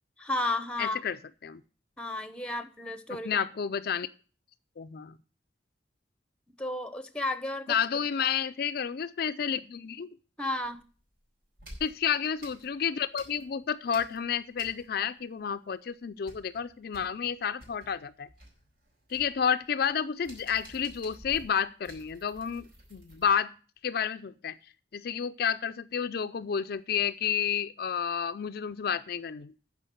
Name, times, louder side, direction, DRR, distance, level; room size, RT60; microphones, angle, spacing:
voice 1, 0.2-1.0 2.0-3.4 6.6-7.7 10.4-10.8, left 2 dB, 5° left, 0.9 m, -33 dB
voice 2, 0.8-1.2 1.4-1.6 3.2-4.1 4.8-5.2 7.7-10.1 11.8-18.3 19.1-22.6 22.9-23.5 23.8-24.6 24.9-29.5, left 7 dB, 60° left, 0.4 m, -30 dB
sound 1, 10.6-11.1 11.6-13.6 13.9-15.2 15.4-15.5 15.9-23.3, equal, 60° right, 4.6 m, -51 dB
12.5 x 4.9 x 7.7 m
head